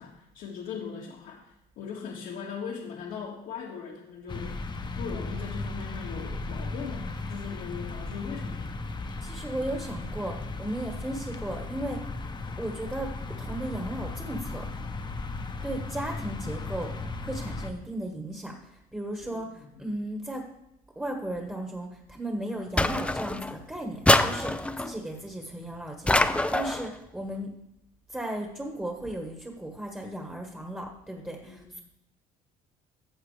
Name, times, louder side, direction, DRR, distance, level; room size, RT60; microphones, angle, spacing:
voice 1, 0.0-4.6 5.0-8.7 19.3-19.5 31.4-31.8, left 6 dB, 80° left, -4 dB, 1.8 m, -39 dB
sound 1, 4.3-17.7, left 3 dB, 25° left, 0.9 m, -36 dB
voice 2, 9.2-12.1 12.6-14.7 15.6-16.9 17.2-20.5 20.9-27.5 28.1-31.8, right 1 dB, 10° right, 1 dB, 1.4 m, -36 dB
sound 2, 22.8-23.6 24.1-24.9 26.1-26.9, left 1 dB, 5° left, 0.5 m, -24 dB
14.5 x 7.4 x 3.3 m, 0.85 s
cardioid pair, 110°, 17 cm